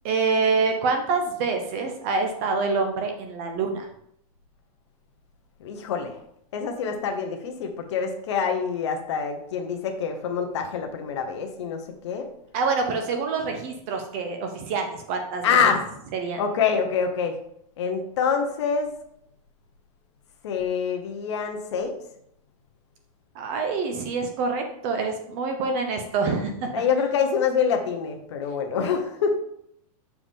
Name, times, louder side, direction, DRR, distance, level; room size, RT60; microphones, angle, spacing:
voice 1, 0.0-3.9 12.5-15.4 16.1-16.4 23.4-26.8, right 4 dB, 25° right, 5 dB, 0.4 m, -26 dB
voice 2, 5.6-6.2 6.5-12.3 15.4-15.8 16.4-17.3 17.8-18.9 20.4-22.0 26.7-29.4, left 6 dB, 50° left, 4 dB, 1.0 m, -26 dB
6.8 x 4.7 x 3.6 m, 0.73 s
supercardioid pair, 180°, 19 cm